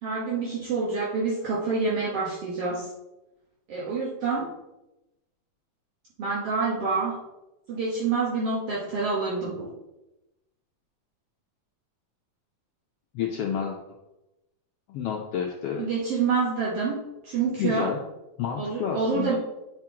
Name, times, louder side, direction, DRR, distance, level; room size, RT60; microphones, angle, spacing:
voice 1, 0.0-2.9 3.7-4.5 6.2-7.2 7.7-9.7 15.8-17.9 18.6-19.4, right 4 dB, 60° right, -6 dB, 2.0 m, -27 dB
voice 2, 13.1-13.8 14.9-15.8 17.6-18.0 18.4-19.4, left 7 dB, 75° left, 1 dB, 1.3 m, -29 dB
9.8 x 4.4 x 3.6 m, 0.97 s
omnidirectional pair, 3.3 m